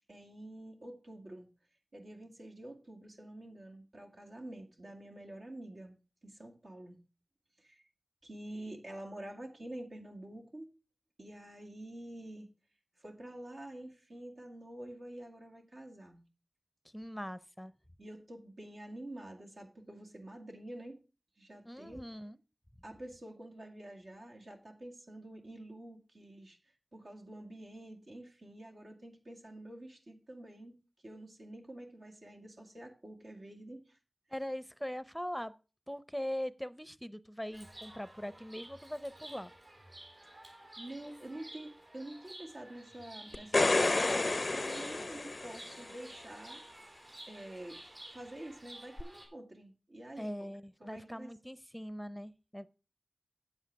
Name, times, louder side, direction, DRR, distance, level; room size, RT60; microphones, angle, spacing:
voice 1, 0.1-1.5 1.9-6.0 6.2-7.0 7.6-7.8 8.2-10.7 11.2-12.5 13.0-16.2 18.0-21.0 21.4-22.0 22.8-30.8 31.0-34.0 40.8-46.6 47.3-50.5 50.8-51.3, right 1 dB, 85° right, 0 dB, 2.2 m, -48 dB
voice 2, 16.8-17.7 21.6-22.4 34.3-35.5 35.9-39.5 50.2-52.7, equal, 5° left, 16 dB, 0.6 m, -41 dB
Chirp tweet, 37.5-49.3, right 1 dB, 65° right, 4.1 m, -52 dB
sound 1, 43.3-45.9 49.0-49.1, left 2 dB, 60° left, 0.4 m, -30 dB
8.6 x 8.2 x 4.6 m, 0.33 s
wide cardioid pair, 45°, 0 cm